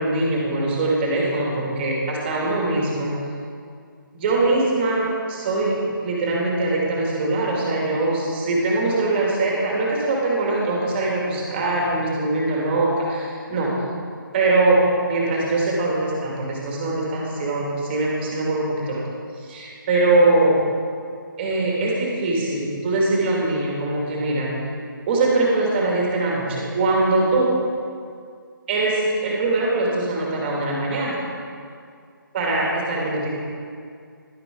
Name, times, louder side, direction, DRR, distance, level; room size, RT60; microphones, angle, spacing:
voice 1, 0.0-3.1 4.1-5.7 6.0-13.7 14.3-14.8 15.1-19.0 19.4-20.6 21.4-24.5 25.1-27.5 28.7-31.2 32.3-33.3, right 2 dB, 30° right, -3 dB, 2.4 m, -22 dB
11.5 x 11.5 x 3.9 m, 2.3 s
figure-of-eight pair, 155°, 12 cm